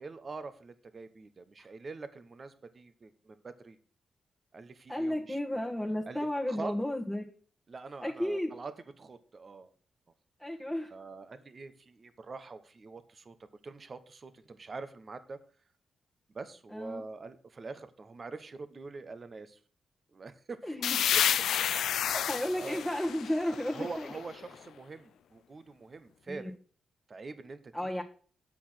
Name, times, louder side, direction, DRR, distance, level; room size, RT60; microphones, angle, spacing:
voice 1, 0.0-3.8 4.5-5.6 6.0-6.7 7.7-8.7 9.0-9.7 10.9-13.3 13.6-15.4 16.3-19.6 20.1-20.7 21.1-21.2 22.6-22.8 23.7-26.5 27.1-27.6, right 4 dB, 45° right, 11 dB, 1.0 m, -44 dB
voice 2, 4.9-7.3 8.0-8.5 10.4-10.9 16.7-17.0 20.6-21.0 22.0-24.1 26.3-26.5 27.7-28.0, left 1 dB, ahead, -2 dB, 1.6 m, -33 dB
sound 1, 20.8-24.4, left 9 dB, 85° left, 0.4 m, -30 dB
8.3 x 6.2 x 6.4 m, 0.42 s
cardioid pair, 65°, 0 cm